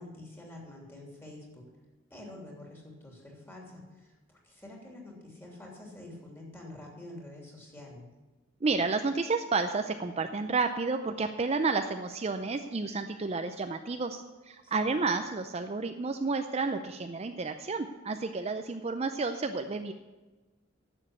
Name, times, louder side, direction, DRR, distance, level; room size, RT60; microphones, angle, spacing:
voice 1, 0.0-1.7 2.1-8.1 14.6-15.0, left 1 dB, 10° left, -1 dB, 3.0 m, -47 dB
voice 2, 8.6-19.9, right 4 dB, 30° right, 7 dB, 0.5 m, -31 dB
11.0 x 7.2 x 8.3 m, 1.2 s
head